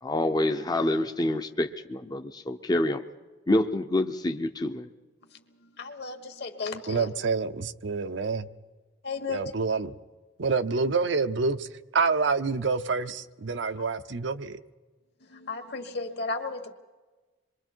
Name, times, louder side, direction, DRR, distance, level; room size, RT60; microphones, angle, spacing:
voice 1, 0.0-3.0 3.5-4.9, left 1 dB, 20° left, 0.6 m, -27 dB
voice 2, 5.8-7.1 9.0-9.5 15.3-16.7, left 4 dB, 60° left, 1.7 m, -34 dB
voice 3, 6.9-8.5 9.3-10.0 10.4-11.7 11.9-14.6, right 4 dB, 75° right, 0.7 m, -27 dB
27.0 x 22.5 x 4.5 m
head